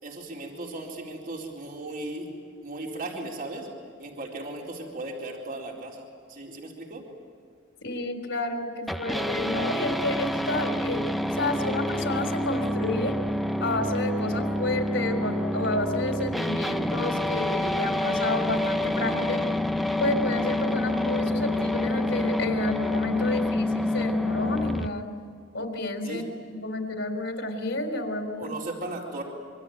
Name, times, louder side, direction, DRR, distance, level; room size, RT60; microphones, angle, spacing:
voice 1, 0.0-2.3 2.6-3.7 4.0-7.1 26.0-26.3 28.3-29.2, right 2 dB, 50° right, -1 dB, 4.2 m, -36 dB
voice 2, 7.8-11.1 11.3-13.1 13.6-19.4 20.0-25.1 25.5-28.5, left 2 dB, 75° left, 3 dB, 3.5 m, -30 dB
sound 1, 8.9-24.9, left 1 dB, ahead, 0.8 m, -27 dB
26.5 x 24.5 x 9.0 m, 2.2 s
head